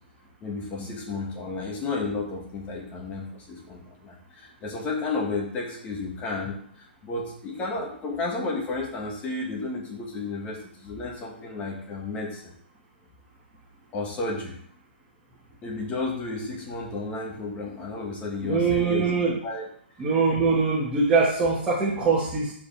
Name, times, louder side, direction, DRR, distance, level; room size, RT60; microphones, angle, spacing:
voice 1, 0.4-12.5 13.9-14.6 15.6-19.7, left 3 dB, 20° left, -1 dB, 2.2 m, -32 dB
voice 2, 18.4-19.3 20.0-22.5, right 4 dB, 15° right, -7 dB, 2.0 m, -23 dB
12.0 x 5.1 x 3.6 m, 0.63 s
hypercardioid pair, 140°, 6 cm